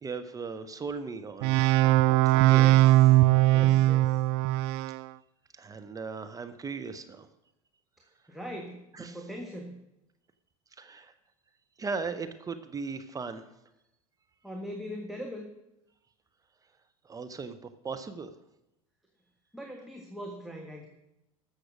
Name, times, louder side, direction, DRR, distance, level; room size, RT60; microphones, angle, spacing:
voice 1, 0.0-1.6 2.5-2.6 5.5-7.3 9.0-9.2 10.8-11.1 11.8-13.5 17.0-18.3, right 4 dB, 20° right, 9 dB, 0.9 m, -37 dB
sound 1, 1.4-5.0, right 17 dB, 50° right, 0.4 m, -20 dB
voice 2, 2.2-3.2 3.5-4.2 8.3-9.7 14.4-15.5 19.5-20.9, equal, ahead, 0 dB, 1.5 m, -41 dB
14.0 x 6.5 x 6.2 m, 0.88 s
figure-of-eight pair, 75°, 18 cm